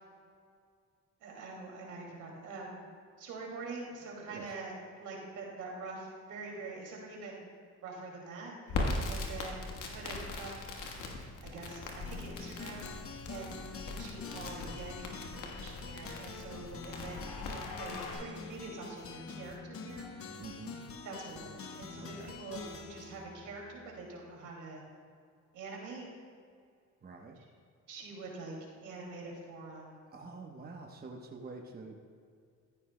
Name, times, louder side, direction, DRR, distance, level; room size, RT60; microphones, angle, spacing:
voice 1, 1.2-2.9 3.2-4.7 5.0-7.5 7.8-8.8 9.1-10.5 11.4-12.9 13.3-20.1 21.0-24.8 25.5-26.1 27.9-30.0, right 3 dB, 80° right, -2 dB, 2.5 m, -45 dB
Crackle, 8.7-18.1, left 2 dB, 90° left, 1.4 m, -40 dB
voice 2, 8.9-9.2 20.4-20.8 21.9-22.3 27.0-27.4 29.9-32.1, right 3 dB, 30° right, 1 dB, 1.0 m, -47 dB
sound 1, 12.0-24.3, left 5 dB, 50° left, 0.9 m, -46 dB
14.5 x 10.0 x 2.2 m, 2.2 s
cardioid pair, 90°, 30 cm